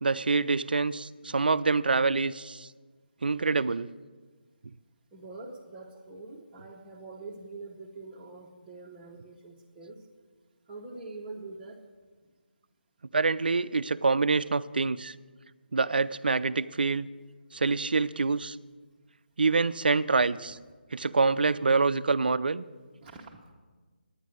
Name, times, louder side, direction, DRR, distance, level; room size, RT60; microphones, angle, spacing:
voice 1, 0.0-2.7 3.2-3.9 13.1-15.1 15.7-17.1 17.5-18.6 19.4-20.6 20.9-22.6, right 4 dB, 60° right, 16 dB, 0.4 m, -26 dB
voice 2, 5.1-10.0 10.7-11.8 23.0-23.5, right 3 dB, 15° right, -5 dB, 0.9 m, -44 dB
10.5 x 9.5 x 6.3 m, 1.4 s
figure-of-eight pair, 150°, 6 cm